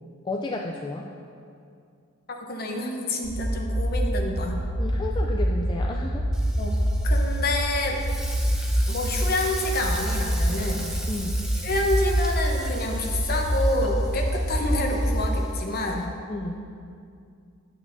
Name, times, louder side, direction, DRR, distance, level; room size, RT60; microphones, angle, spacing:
voice 1, 0.2-1.1 4.8-6.2 11.1-11.4 16.3-16.6, left 2 dB, 20° left, 0 dB, 0.3 m, -32 dB
voice 2, 2.3-4.6 6.6-8.0 8.9-10.9 11.6-16.1, left 1 dB, 45° left, 1 dB, 0.9 m, -28 dB
sound 1, 3.2-15.2, equal, 60° right, 1.6 m, -26 dB
Frying (food), 6.3-16.0, equal, 5° right, 0.7 m, -39 dB
9.8 x 8.4 x 2.6 m, 2.4 s
head